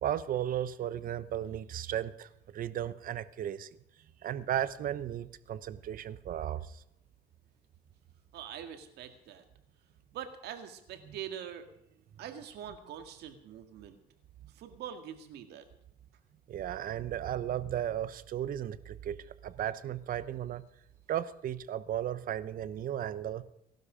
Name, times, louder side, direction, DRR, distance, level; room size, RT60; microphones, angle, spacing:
voice 1, 0.0-3.7 4.2-6.8 16.5-20.6 21.1-23.4, right 11 dB, 55° right, 15 dB, 0.9 m, -35 dB
voice 2, 8.3-9.4 10.1-11.7 12.2-14.0 14.5-15.7, right 9 dB, 75° right, 7 dB, 1.9 m, -44 dB
18.0 x 12.0 x 5.1 m, 0.75 s
cardioid pair, 110°, 17 cm